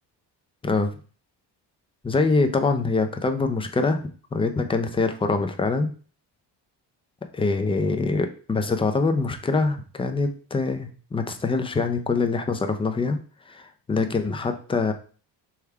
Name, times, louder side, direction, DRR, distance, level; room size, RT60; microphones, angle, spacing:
voice 1, 2.0-5.9 7.3-13.2 13.5-14.9, left 3 dB, 15° left, 7 dB, 0.4 m, -24 dB
3.4 x 2.4 x 4.4 m, 0.40 s
cardioid pair, 115°, 42 cm